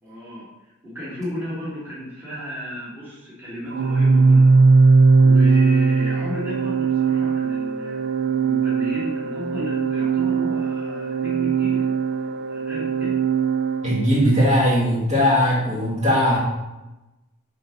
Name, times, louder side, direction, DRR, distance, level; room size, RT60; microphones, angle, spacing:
voice 1, 0.0-0.5 0.8-4.6 4.8-4.9 5.2-13.2, left 1 dB, 10° right, -10 dB, 2.4 m, -34 dB
Organ, 3.7-14.5, right 4 dB, 50° right, 0.4 m, -19 dB
voice 2, 13.8-16.4, equal, 30° right, -9 dB, 2.1 m, -19 dB
5.3 x 3.8 x 5.9 m, 1.0 s
head